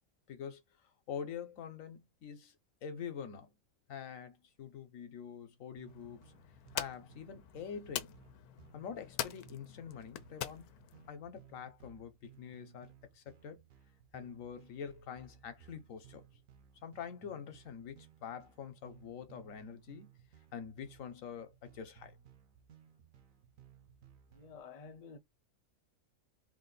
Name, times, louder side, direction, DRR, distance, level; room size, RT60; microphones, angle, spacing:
voice 1, 0.3-0.6 1.1-2.5 2.8-3.5 3.9-6.3 6.7-8.1 8.7-10.6 11.1-13.6 14.1-16.2 16.8-20.1 20.5-22.2, left 7 dB, 65° left, 1.2 m, -45 dB
sound 1, 5.8-24.6, right 9 dB, 70° right, 1.2 m, -61 dB
sound 2, 5.9-11.1, left 11 dB, 90° left, 1.1 m, -44 dB
voice 2, 24.3-25.2, left 5 dB, 50° left, 0.4 m, -51 dB
3.3 x 2.5 x 3.9 m
omnidirectional pair, 1.5 m